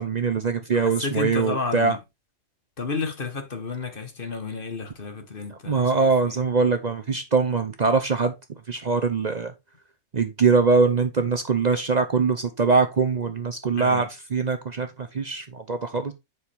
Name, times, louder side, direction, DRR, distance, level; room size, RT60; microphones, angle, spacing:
voice 1, 0.0-2.0 5.7-8.3 8.7-9.5 10.1-16.1, right 4 dB, 45° right, 0.5 m, -22 dB
voice 2, 0.7-2.0 2.8-6.4 13.7-14.1, left 4 dB, 35° left, 1.3 m, -32 dB
7.3 x 6.2 x 3.4 m
omnidirectional pair, 1.7 m